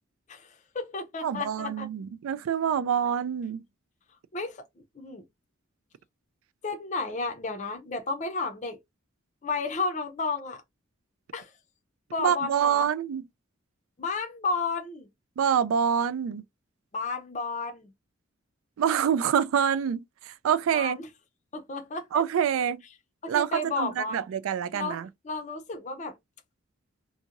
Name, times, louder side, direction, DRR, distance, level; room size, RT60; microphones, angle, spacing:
voice 1, 0.3-1.9 4.3-4.6 5.0-5.3 6.6-8.8 9.4-10.6 11.3-11.5 12.1-12.9 14.0-15.1 16.9-17.9 20.7-21.1 21.5-22.1 23.2-24.2 24.7-25.0 25.2-26.2, left 3 dB, 35° left, 0.5 m, -32 dB
voice 2, 1.2-3.6 12.2-13.2 15.4-16.4 18.8-21.0 22.1-22.8 23.3-25.1, right 8 dB, 80° right, 0.3 m, -26 dB
2.8 x 2.6 x 2.5 m
head